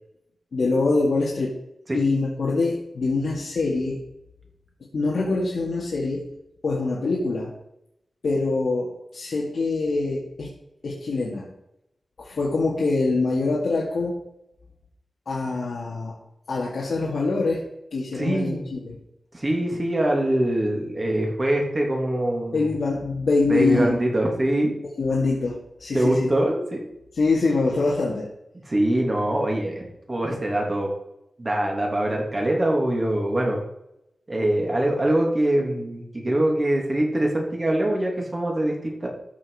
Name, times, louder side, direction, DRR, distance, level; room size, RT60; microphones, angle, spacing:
voice 1, 0.5-1.6 1.9-4.0 4.9-6.3 6.6-7.5 8.2-10.5 10.8-11.5 12.2-14.2 15.3-16.1 16.5-17.6 17.9-19.0 22.5-24.0 25.0-26.3 27.1-28.3, left 3 dB, 70° left, -4 dB, 2.1 m, -24 dB
voice 2, 18.1-18.6 19.3-22.7 23.5-24.8 25.9-26.8 28.7-30.9 31.4-33.6 34.3-39.1, right 1 dB, 25° right, 0 dB, 2.8 m, -23 dB
13.5 x 6.4 x 4.9 m, 0.83 s
wide cardioid pair, 130°, 0 cm